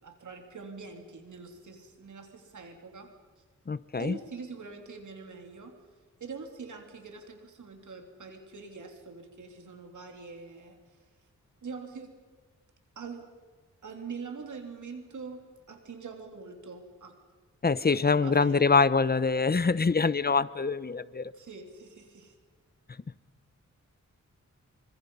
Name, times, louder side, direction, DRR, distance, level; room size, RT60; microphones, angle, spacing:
voice 1, 0.0-3.1 4.0-5.8 6.2-11.0 11.6-12.1 12.9-13.3 13.8-15.4 15.7-17.1 17.9-18.7 21.3-22.3, right 4 dB, 80° right, 4 dB, 3.2 m, -44 dB
voice 2, 3.7-4.2 17.6-21.3, left 4 dB, 30° left, 16 dB, 0.8 m, -24 dB
27.5 x 25.5 x 5.6 m, 1.5 s
wide cardioid pair, 90°, 30 cm